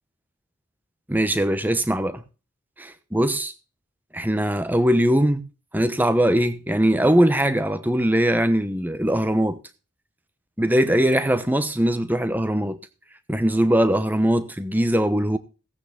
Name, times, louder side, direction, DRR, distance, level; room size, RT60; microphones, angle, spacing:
voice 1, 1.1-2.2 2.8-3.5 4.1-5.4 5.7-9.6 10.6-12.8 13.3-15.4, right 1 dB, 10° right, 0.9 m, -21 dB
16.0 x 8.9 x 3.6 m
head